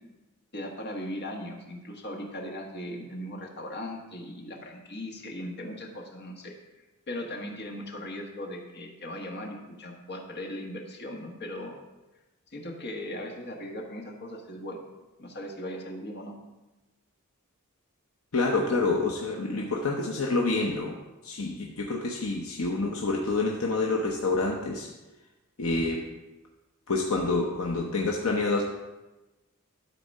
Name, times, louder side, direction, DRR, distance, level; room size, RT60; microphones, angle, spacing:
voice 1, 0.5-6.5 7.1-11.7 12.5-14.9 15.2-16.3 18.6-18.7, left 1 dB, 50° left, 0 dB, 1.6 m, -38 dB
voice 2, 18.3-24.9 25.6-26.0 26.9-28.6, left 3 dB, 70° left, 0 dB, 0.8 m, -27 dB
12.5 x 4.2 x 5.4 m, 1.1 s
head